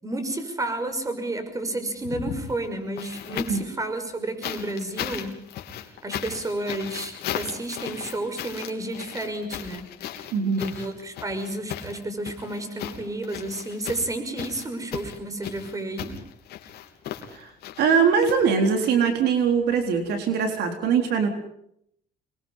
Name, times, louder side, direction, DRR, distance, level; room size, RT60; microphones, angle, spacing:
voice 1, 0.0-5.4 6.0-9.9 10.6-16.1, right 2 dB, 20° right, 8 dB, 6.0 m, -31 dB
sound 1, 2.0-3.7 4.4-18.9 20.1-20.2, left 10 dB, 70° left, 3.4 m, -36 dB
voice 2, 10.3-10.6 17.3-17.5 17.8-21.3, right 6 dB, 75° right, 5 dB, 3.8 m, -22 dB
27.5 x 22.0 x 5.6 m, 0.71 s
cardioid pair, 110°, 17 cm